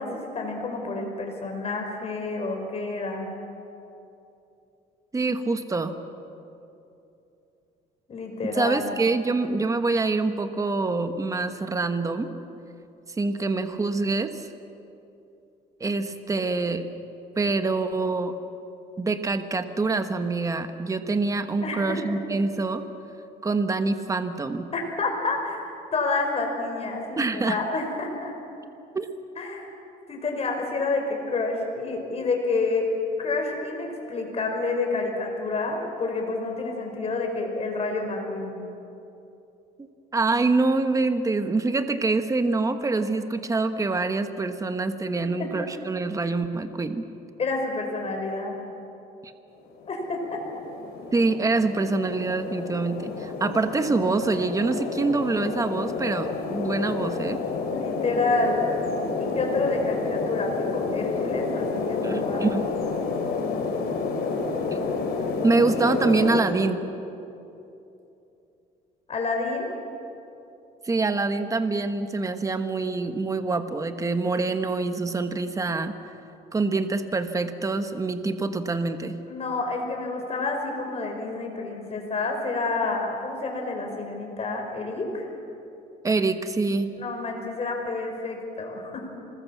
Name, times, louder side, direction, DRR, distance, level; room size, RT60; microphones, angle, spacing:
voice 1, 0.0-3.3 8.1-8.9 21.6-22.0 24.7-25.6 25.9-28.3 29.4-29.7 30.1-32.9 33.2-38.6 45.4-45.5 47.4-48.6 49.9-50.6 57.7-58.6 59.2-62.5 69.1-69.7 79.3-85.3 87.0-89.1, left 3 dB, 35° left, 2 dB, 5.4 m, -29 dB
voice 2, 5.1-6.0 8.6-12.3 13.2-14.5 15.8-16.9 17.4-18.3 19.0-22.8 23.4-24.7 27.2-27.6 28.9-29.1 40.1-47.0 51.1-57.4 62.0-62.6 64.7-64.8 65.4-66.8 70.8-75.9 76.5-79.2 86.0-86.9, right 3 dB, 20° right, 8 dB, 1.3 m, -25 dB
sound 1, 49.7-66.4, left 4 dB, 65° left, 3.8 m, -30 dB
26.0 x 20.0 x 7.3 m, 2.8 s
cardioid pair, 110°, 17 cm